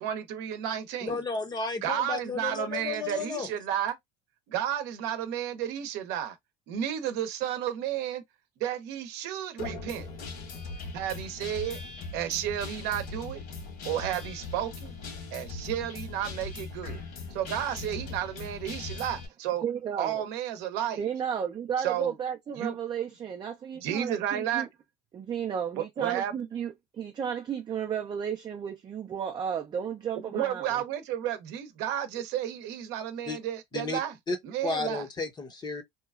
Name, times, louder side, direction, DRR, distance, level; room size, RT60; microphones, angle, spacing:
voice 1, 0.0-1.2 1.8-4.0 4.5-6.4 6.7-8.2 8.6-10.1 10.9-11.8 12.1-13.4 13.8-14.9 15.3-17.0 17.3-19.6 20.0-21.0 21.8-22.1 22.6-22.7 23.8-24.7 25.8-26.5 30.3-34.1 34.4-35.0, right 10 dB, 65° right, 0.8 m, -32 dB
voice 2, 1.0-3.5 33.3-33.4 33.7-34.0 34.3-34.4 34.6-35.8, left 4 dB, 25° left, 0.7 m, -33 dB
Guitar, 9.6-19.3, left 3 dB, 60° left, 1.5 m, -39 dB
voice 3, 19.6-20.2 21.0-24.7 25.1-30.8, right 8 dB, 25° right, 0.5 m, -33 dB
2.9 x 2.3 x 2.3 m
supercardioid pair, 120°, 18 cm